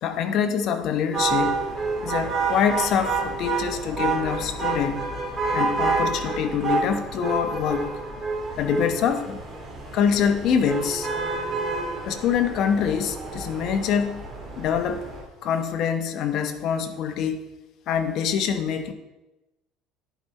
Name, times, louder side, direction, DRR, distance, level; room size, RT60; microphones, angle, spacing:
voice 1, 0.0-1.6 2.0-5.1 5.5-7.9 8.6-9.4 9.9-11.1 12.1-14.2 14.6-15.1 15.4-17.4 17.9-18.9, left 7 dB, 55° left, 8 dB, 0.8 m, -25 dB
sound 1, 1.1-15.2, right 4 dB, 25° right, 2.4 m, -29 dB
10.5 x 4.9 x 4.3 m, 1.0 s
supercardioid pair, 115°, 0 cm